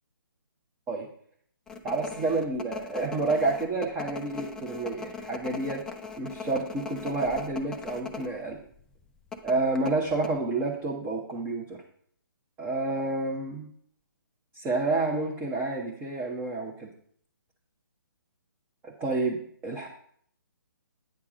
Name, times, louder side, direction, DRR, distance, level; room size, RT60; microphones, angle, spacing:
sound 1, 1.7-8.3 8.6-8.7 9.3-10.3, left 5 dB, 5° left, 0.4 m, -39 dB
voice 1, 1.8-5.8 6.2-8.6 9.4-11.7 12.6-13.7 14.5-16.9 18.8-19.9, right 3 dB, 10° right, -1 dB, 0.8 m, -29 dB
8.9 x 3.6 x 6.1 m, 0.63 s
figure-of-eight pair, 140°, 12 cm